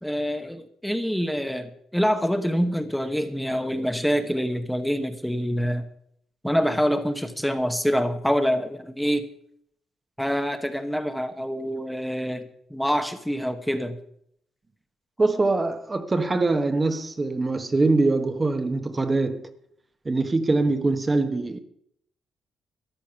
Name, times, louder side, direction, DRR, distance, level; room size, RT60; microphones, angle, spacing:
voice 1, 0.0-5.9 6.4-9.3 10.2-14.0, equal, ahead, 1.2 m, -26 dB
voice 2, 15.2-19.5 20.0-21.6, right 3 dB, 25° right, 1.2 m, -23 dB
13.5 x 10.5 x 5.8 m
cardioid pair, 90°, 0 cm